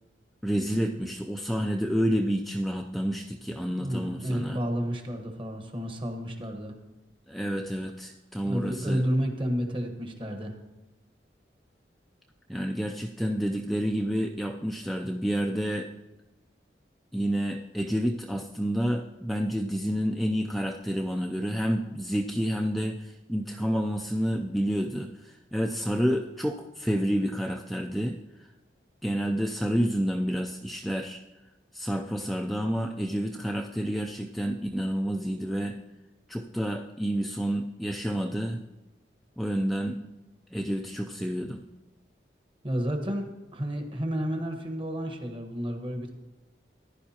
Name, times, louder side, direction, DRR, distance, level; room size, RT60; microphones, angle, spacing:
voice 1, 0.4-4.6 7.3-9.0 12.5-15.9 17.1-28.5 29.0-31.2 31.7-35.8 36.3-38.6 39.4-40.0 40.5-41.6, equal, ahead, 1 dB, 0.4 m, -29 dB
voice 2, 3.7-6.8 8.4-10.5 42.6-43.3 43.5-46.1, equal, 30° right, 4 dB, 1.2 m, -31 dB
15.0 x 10.5 x 2.9 m, 1.0 s
head